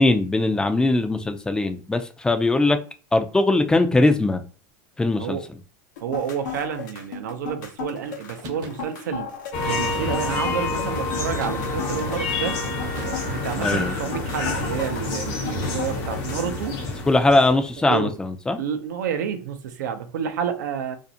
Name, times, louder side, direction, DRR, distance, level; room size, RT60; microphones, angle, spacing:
voice 1, 0.0-2.8 3.1-4.4 5.0-5.4 13.6-13.9 17.1-18.6, left 2 dB, 10° left, 0.3 m, -20 dB
sound 1, 6.0-16.6, left 5 dB, 85° left, 0.7 m, -35 dB
voice 2, 6.0-9.3 9.7-12.6 13.0-16.8 17.9-18.1 18.6-21.0, right 7 dB, 85° right, 0.5 m, -29 dB
sound 2, 8.4-8.9 10.0-10.6 11.4-12.0 12.9-13.6, right 4 dB, 45° right, 0.7 m, -41 dB
sound 3, 9.5-17.8, left 3 dB, 55° left, 0.9 m, -28 dB
2.5 x 2.0 x 2.6 m
supercardioid pair, 110°, 10 cm